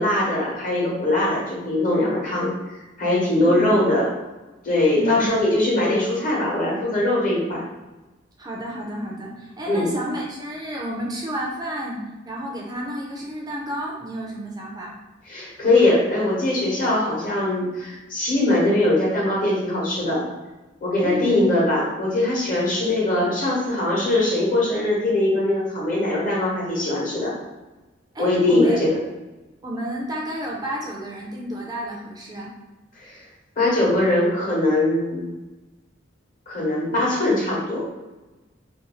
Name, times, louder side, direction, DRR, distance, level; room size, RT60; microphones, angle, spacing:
voice 1, 0.0-2.5 3.0-4.1 4.6-7.6 9.7-9.9 15.3-20.3 20.8-27.3 28.2-28.9 33.0-33.2 33.6-35.2 36.5-37.9, left 1 dB, 45° left, -4 dB, 0.9 m, -21 dB
voice 2, 3.3-3.7 4.9-5.3 8.4-15.0 21.0-21.5 28.1-28.8 29.6-32.5, equal, 20° right, -2 dB, 0.4 m, -30 dB
2.5 x 2.2 x 3.0 m, 1.1 s
head